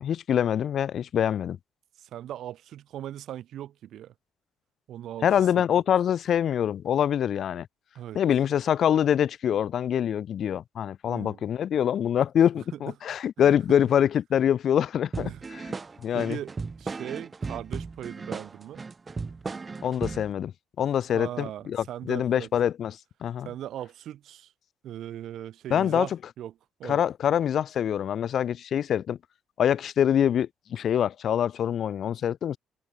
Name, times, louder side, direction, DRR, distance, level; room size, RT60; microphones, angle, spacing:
voice 1, 0.0-1.6 5.2-7.7 8.1-15.6 16.0-16.4 19.8-20.5 20.8-23.5 25.7-26.1 26.8-29.2 29.6-32.6, left 9 dB, 60° left, 0.4 m, -25 dB
voice 2, 2.0-4.1 4.9-5.6 8.0-8.2 11.1-11.4 12.7-12.8 13.4-13.8 15.2-15.4 16.1-16.5 16.8-18.8 21.1-22.5 23.4-24.5 24.8-26.5 26.8-27.0, right 11 dB, 70° right, 1.7 m, -39 dB
sound 1, 15.1-20.3, right 4 dB, 30° right, 0.5 m, -36 dB
cardioid pair, 90°, 0 cm